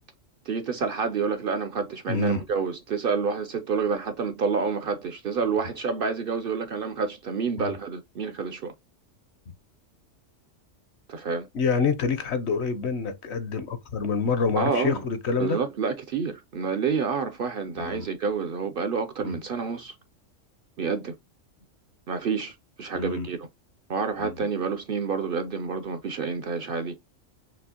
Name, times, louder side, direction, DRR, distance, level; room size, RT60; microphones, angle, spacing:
voice 1, 0.5-8.7 11.1-11.5 14.5-15.0 15.4-19.9 20.8-21.1 22.1-23.5 23.9-27.0, right 5 dB, 55° right, 0.7 m, -28 dB
voice 2, 2.1-2.4 7.6-7.7 11.5-15.6 17.8-18.1 19.2-19.4 22.9-23.3 24.2-24.5, left 5 dB, 65° left, 1.0 m, -27 dB
6.0 x 2.8 x 2.8 m
omnidirectional pair, 1.3 m